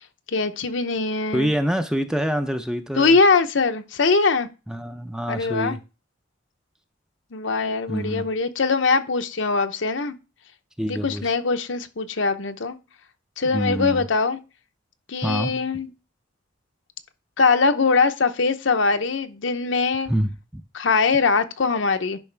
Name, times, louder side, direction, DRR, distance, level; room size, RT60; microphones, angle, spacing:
voice 1, 0.3-1.5 3.0-4.5 5.3-5.8 7.3-10.1 10.9-12.8 13.4-14.4 15.1-15.9 17.4-20.1 20.7-22.2, left 4 dB, 70° left, 0.7 m, -22 dB
voice 2, 1.3-3.2 4.7-5.8 7.9-8.2 10.8-11.2 13.5-14.0 15.2-15.5 20.1-20.6, equal, 5° right, 0.5 m, -26 dB
10.5 x 5.3 x 3.3 m
head